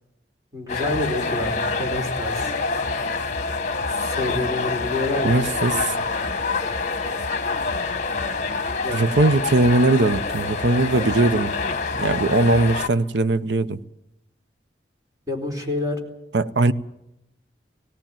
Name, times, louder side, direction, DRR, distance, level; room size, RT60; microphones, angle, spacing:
voice 1, 0.5-2.5 3.9-5.8 8.8-9.0 15.3-16.0, left 2 dB, 20° right, 4.1 m, -28 dB
sound 1, 0.7-12.9, left 4 dB, 45° left, 1.1 m, -26 dB
voice 2, 5.2-6.0 8.9-11.5 12.0-13.8 16.3-16.7, right 2 dB, 85° right, 0.8 m, -20 dB
18.0 x 18.0 x 9.0 m
head